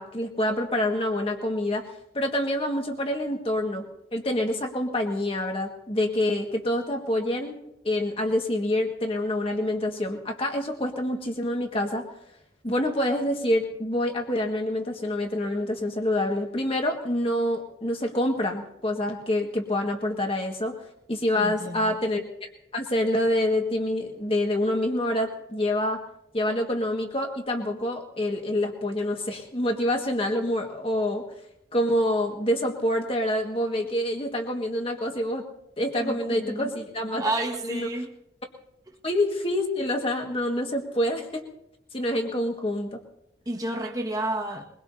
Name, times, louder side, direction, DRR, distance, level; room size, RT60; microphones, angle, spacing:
voice 1, 0.0-1.9 2.1-7.6 7.8-12.1 12.6-20.8 21.1-26.0 26.3-31.2 31.7-35.5 35.8-37.2 37.6-37.9 39.0-41.4 41.9-43.0, left 1 dB, 30° left, 3 dB, 1.8 m, -27 dB
voice 2, 21.4-22.0 36.0-36.7 37.2-38.1 43.4-44.6, right 1 dB, 20° right, 0 dB, 1.7 m, -30 dB
23.0 x 22.0 x 2.8 m, 0.83 s
head